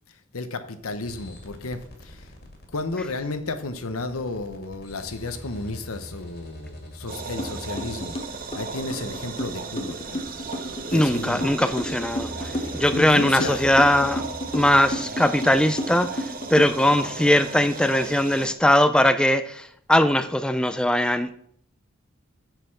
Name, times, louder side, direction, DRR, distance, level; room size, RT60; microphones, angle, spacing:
voice 1, 0.3-2.3 2.7-10.3 10.9-11.5 12.6-13.7, left 3 dB, 85° left, 1.0 m, -33 dB
sound 1, 1.0-15.0, equal, 50° left, 2.2 m, -43 dB
sound 2, 7.1-18.5, right 4 dB, 40° right, 0.9 m, -36 dB
sound 3, 7.4-7.5 7.8-17.0, left 1 dB, 25° left, 0.9 m, -31 dB
voice 2, 10.9-14.2 14.5-21.3, left 1 dB, 5° left, 0.3 m, -20 dB
8.0 x 6.6 x 5.9 m
head